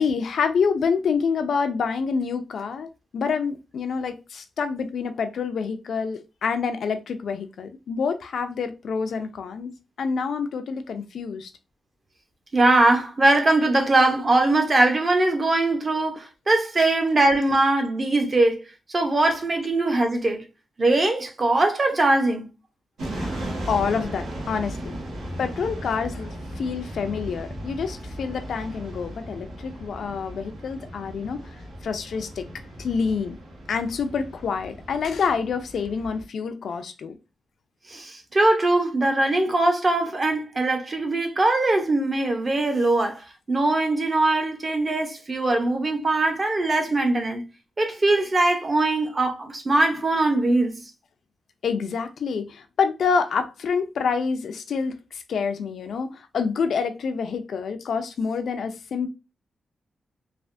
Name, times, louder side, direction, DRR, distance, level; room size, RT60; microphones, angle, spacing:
voice 1, 0.0-9.7 10.0-11.5 23.1-25.0 25.4-31.4 31.8-32.5 32.8-33.4 33.7-37.1 51.6-59.1, left 5 dB, 65° left, 0.4 m, -27 dB
voice 2, 12.5-18.6 18.9-20.4 20.8-22.5 37.9-43.2 43.5-47.4 47.8-50.7, right 2 dB, 30° right, 0.6 m, -21 dB
sound 1, 23.0-36.2, right 1 dB, 90° right, 1.1 m, -36 dB
3.3 x 2.0 x 2.5 m
wide cardioid pair, 145°, 0 cm